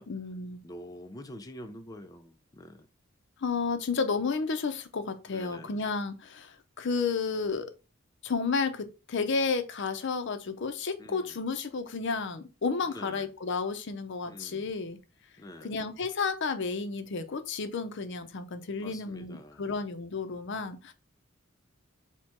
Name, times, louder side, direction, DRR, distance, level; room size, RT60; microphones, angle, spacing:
voice 1, 0.1-0.6 3.4-7.7 8.2-15.0 15.6-20.9, left 4 dB, 65° left, 0.6 m, -32 dB
voice 2, 0.6-2.9 5.3-5.9 11.0-11.3 12.9-13.3 14.2-14.7 15.4-15.7 18.8-19.6, left 1 dB, 20° left, 0.4 m, -46 dB
4.4 x 2.2 x 4.4 m
head